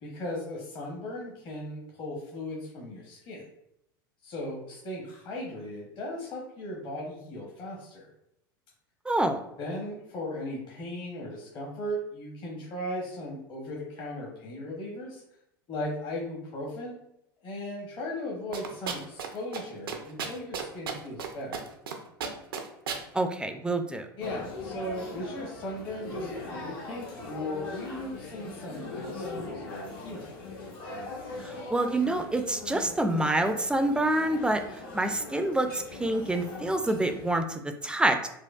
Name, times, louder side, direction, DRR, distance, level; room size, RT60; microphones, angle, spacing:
voice 1, 0.0-3.4 4.2-8.1 9.6-15.2 15.7-17.0 17.4-21.6 24.2-30.3, left 1 dB, 45° left, -3 dB, 0.9 m, -37 dB
voice 2, 9.1-9.4 23.1-24.1 31.4-34.6 34.9-38.3, right 1 dB, 10° right, 6 dB, 0.3 m, -27 dB
sound 1, 18.5-19.3 19.5-19.6 19.9-21.3 21.5-21.9 22.2-23.0, right 6 dB, 85° right, 0.5 m, -33 dB
sound 2, 24.2-37.4, left 3 dB, 75° left, 1.0 m, -40 dB
4.4 x 2.2 x 2.3 m, 0.78 s
hypercardioid pair, 85°, 12 cm